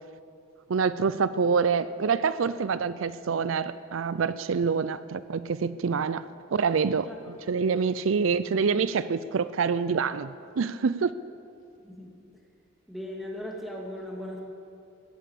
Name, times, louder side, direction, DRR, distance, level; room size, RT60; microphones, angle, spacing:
voice 1, 0.7-11.1, right 5 dB, 85° right, 15 dB, 0.5 m, -26 dB
voice 2, 12.9-14.4, left 1 dB, ahead, -2 dB, 2.5 m, -37 dB
16.5 x 10.0 x 8.4 m, 2.5 s
head